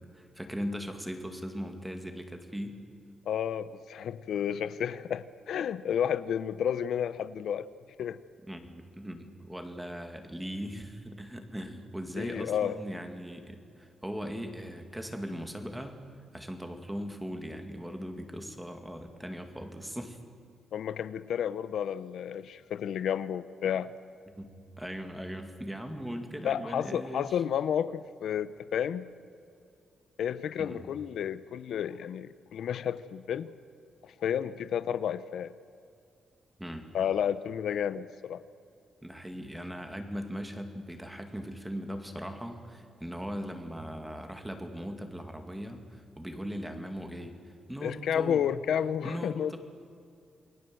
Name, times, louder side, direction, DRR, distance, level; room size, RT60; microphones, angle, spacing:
voice 1, 0.0-2.8 8.5-16.0 16.3-20.2 24.3-24.5 24.8-27.4 30.6-31.0 36.6-36.8 39.0-48.4 49.0-49.6, equal, 5° right, 6 dB, 2.3 m, -39 dB
voice 2, 3.3-7.7 8.0-8.2 12.2-12.7 20.7-23.9 26.4-29.0 30.2-33.5 34.0-35.5 36.9-38.4 47.8-49.6, left 9 dB, 75° left, 14 dB, 0.7 m, -31 dB
28.5 x 21.5 x 7.8 m, 2.4 s
wide cardioid pair, 150°, 0 cm